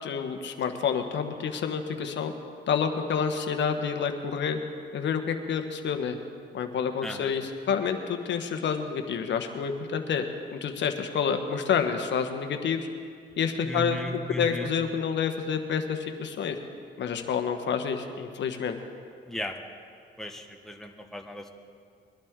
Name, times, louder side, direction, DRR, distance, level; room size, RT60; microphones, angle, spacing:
voice 1, 0.0-2.3 2.7-4.6 4.9-6.2 6.5-10.2 10.5-12.8 13.4-16.6 17.0-18.8, left 6 dB, 65° left, 6 dB, 1.3 m, -28 dB
voice 2, 7.0-7.3 13.6-14.7 19.3-19.6 20.2-21.5, left 1 dB, ahead, 2 dB, 1.3 m, -36 dB
22.0 x 11.5 x 3.7 m, 2.2 s
cardioid pair, 90°, 20 cm